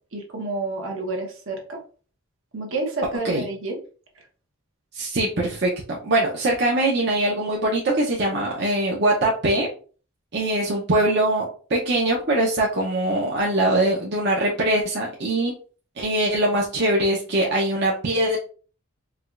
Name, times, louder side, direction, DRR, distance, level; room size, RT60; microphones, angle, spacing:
voice 1, 0.1-1.8 2.5-3.8, right 2 dB, 70° right, 1 dB, 1.0 m, -29 dB
voice 2, 4.9-9.7 10.3-15.5 16.0-18.4, right 1 dB, 50° right, -3 dB, 0.7 m, -22 dB
4.7 x 2.3 x 2.4 m, 0.39 s
head